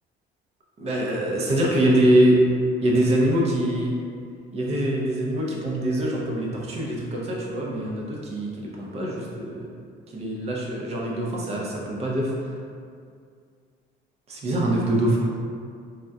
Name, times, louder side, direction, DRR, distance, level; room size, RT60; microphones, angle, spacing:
voice 1, 0.8-2.4 2.8-3.9 4.5-9.7 10.1-12.3 14.3-15.3, right 1 dB, 35° right, -3 dB, 0.5 m, -23 dB
3.4 x 2.3 x 2.6 m, 2.2 s
cardioid pair, 150°, 19 cm